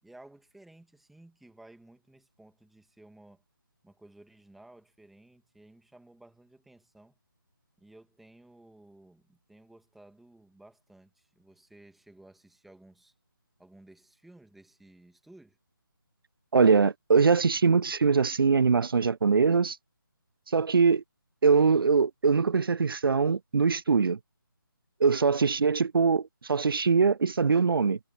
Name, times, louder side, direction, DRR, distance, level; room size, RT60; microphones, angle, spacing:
voice 1, 0.0-3.4 3.8-7.2 7.8-13.1 13.6-15.6, right 1 dB, ahead, 2.4 m, -55 dB
voice 2, 16.5-19.8 20.5-21.0 21.4-24.2 25.0-28.0, right 5 dB, 80° right, 0.4 m, -22 dB
figure-of-eight pair, 155°, 12 cm